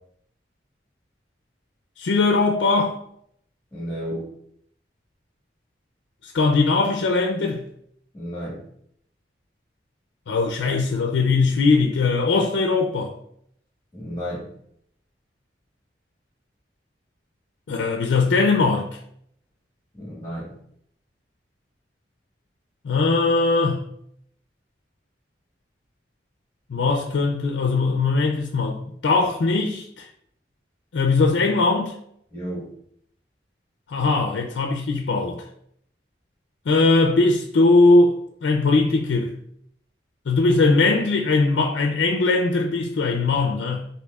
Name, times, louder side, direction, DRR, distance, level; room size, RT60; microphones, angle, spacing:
voice 1, 2.0-3.0 6.2-7.7 10.3-13.1 17.7-18.9 22.8-23.9 26.7-30.1 30.9-32.0 33.9-35.4 36.7-39.3 40.3-43.9, left 3 dB, 75° left, 0.4 m, -20 dB
voice 2, 3.7-4.3 8.1-8.6 13.9-14.5 20.0-20.5 32.3-32.7, equal, 10° left, 1.4 m, -32 dB
6.1 x 2.9 x 2.3 m
head